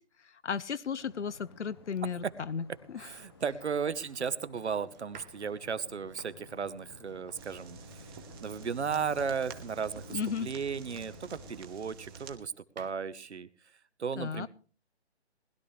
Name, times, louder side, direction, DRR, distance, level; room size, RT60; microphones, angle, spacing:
voice 1, 0.2-3.1 10.1-10.5 14.2-14.5, left 6 dB, 85° left, 13 dB, 0.7 m, -35 dB
Waves surf, 1.0-11.7, left 5 dB, 25° left, 0.5 m, -55 dB
Domestic sounds home sounds, 3.0-11.2 11.8-12.9, right 7 dB, 40° right, 1.0 m, -58 dB
voice 2, 3.0-8.1 8.4-13.5 14.0-14.5, right 6 dB, 75° right, 15 dB, 1.2 m, -35 dB
sound 1, 7.4-12.4, right 6 dB, 20° right, 1.2 m, -49 dB
20.0 x 11.5 x 3.3 m, 0.38 s
hypercardioid pair, 155°, 34 cm